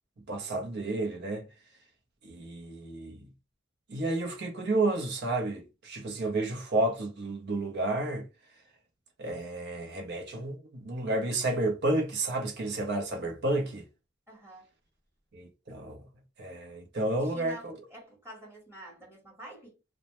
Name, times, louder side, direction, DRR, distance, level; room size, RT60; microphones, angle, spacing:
voice 1, 0.3-1.5 2.2-3.3 3.9-8.3 9.2-13.9 15.3-16.0 16.4-17.7, right 2 dB, 60° right, 0.6 m, -31 dB
voice 2, 14.3-14.7 17.2-19.8, right 1 dB, 15° right, 1.0 m, -48 dB
2.1 x 2.1 x 2.8 m
head